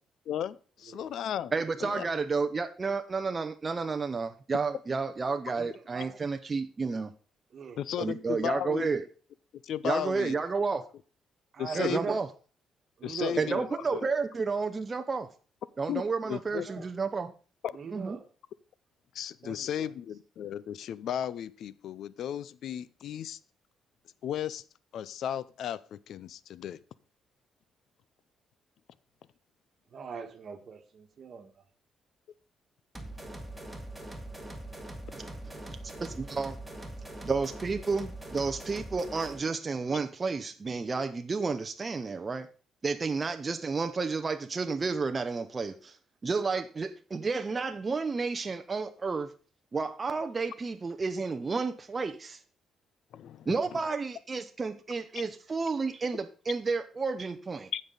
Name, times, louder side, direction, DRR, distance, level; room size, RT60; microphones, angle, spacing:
voice 1, 0.3-1.5 1.8-2.1 7.8-8.9 9.6-10.3 11.6-12.2 13.0-14.1 15.9-16.0 16.3-16.7 17.6-17.8 19.1-23.4 24.2-24.6 24.9-26.8 53.1-53.6 57.7-57.8, left 10 dB, 70° left, 19 dB, 0.4 m, -35 dB
voice 2, 1.5-7.1 8.0-9.0 9.8-10.9 11.7-12.3 13.4-15.3 15.8-17.3 17.9-18.2 35.4-35.6 36.0-36.5 37.2-42.5 42.8-46.0 46.2-49.3 49.7-52.4 53.5-57.7, right 4 dB, 30° right, 8 dB, 0.6 m, -31 dB
voice 3, 5.5-6.1 7.5-7.8 11.5-12.2 13.0-13.6 16.2-16.9 17.7-18.2 19.4-19.9 29.9-31.5, right 6 dB, 50° right, 7 dB, 1.4 m, -40 dB
sound 1, 32.9-39.5, right 1 dB, 5° right, 1.8 m, -42 dB
15.0 x 5.4 x 3.8 m, 0.38 s
cardioid pair, 90°, 0 cm